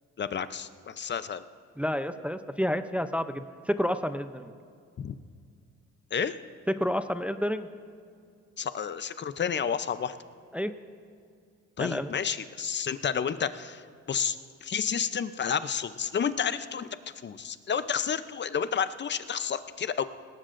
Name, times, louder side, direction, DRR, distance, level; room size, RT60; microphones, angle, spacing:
voice 1, 0.2-1.4 5.0-5.1 6.1-6.3 8.6-10.2 11.8-13.8 14.1-14.4 14.6-16.9 17.2-20.0, left 7 dB, 40° left, 13 dB, 0.6 m, -30 dB
voice 2, 1.8-4.5 6.7-7.7 10.5-10.7 11.8-12.1, equal, 5° right, 10 dB, 0.5 m, -29 dB
19.5 x 18.0 x 2.6 m, 2.3 s
cardioid pair, 85°, 29 cm